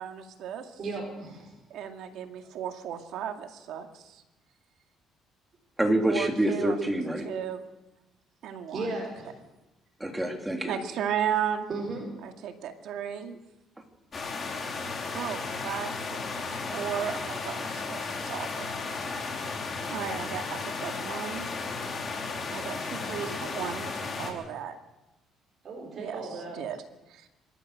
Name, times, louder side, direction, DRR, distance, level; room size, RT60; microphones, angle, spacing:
voice 1, 0.0-0.7 1.7-4.2 6.1-6.8 7.2-7.6 8.4-8.9 10.7-11.7 12.2-13.4 15.1-18.7 19.9-21.5 22.5-23.9 24.2-24.8 25.9-26.2 26.6-26.8 27.1-27.3, right 9 dB, 70° right, 5 dB, 2.2 m, -35 dB
voice 2, 0.8-1.6 8.7-9.3 11.7-12.1 25.6-26.6, right 3 dB, 40° right, -1 dB, 5.0 m, -35 dB
voice 3, 5.8-7.3 10.0-10.8 14.6-14.7, right 1 dB, 10° right, 3 dB, 3.0 m, -27 dB
sound 1, 14.1-24.3, left 4 dB, 30° left, 3.9 m, -34 dB
25.5 x 13.5 x 8.0 m, 1.0 s
cardioid pair, 130°, 0 cm